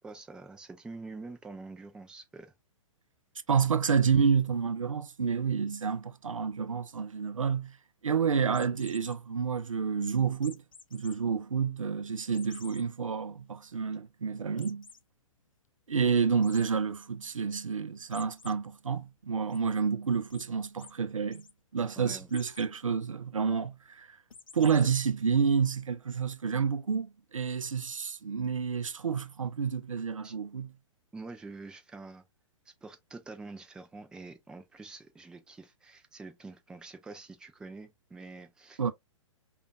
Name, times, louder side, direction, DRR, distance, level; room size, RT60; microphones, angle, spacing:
voice 1, 0.0-2.5 22.0-22.3 30.2-30.3 31.1-32.2 32.7-38.9, right 3 dB, 5° right, 0.4 m, -46 dB
voice 2, 3.5-7.8 8.0-10.6 10.9-14.9 15.9-21.5 21.7-24.2 24.5-30.7 38.8-38.9, right 6 dB, 80° right, 0.5 m, -29 dB
sound 1, 8.5-9.2 10.4-11.1 11.6-11.7 12.3-12.8 13.3-13.4 13.7-13.8 14.6-15.0 16.4-16.6 18.1-18.5 19.0-19.6 20.3-20.4 20.8-20.9 21.2-21.5 22.3-22.7 24.3-25.0, left 5 dB, 80° left, 0.5 m, -51 dB
5.0 x 2.4 x 2.2 m
figure-of-eight pair, 115°, 17 cm